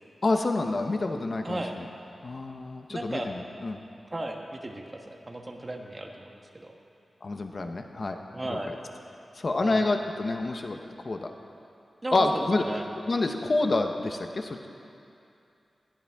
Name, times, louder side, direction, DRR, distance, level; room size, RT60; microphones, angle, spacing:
voice 1, 0.2-1.8 2.2-3.8 7.2-8.2 8.5-8.7 9.4-10.8 11.0-11.3 12.1-12.6 13.1-14.6, left 2 dB, 45° left, 5 dB, 0.8 m, -28 dB
voice 2, 1.4-1.7 2.9-3.3 4.1-6.7 8.3-8.8 9.6-9.9 12.0-12.4 12.6-12.9, right 1 dB, 25° right, 2 dB, 1.2 m, -35 dB
20.5 x 14.0 x 3.5 m, 2.7 s
wide cardioid pair, 125°, 0 cm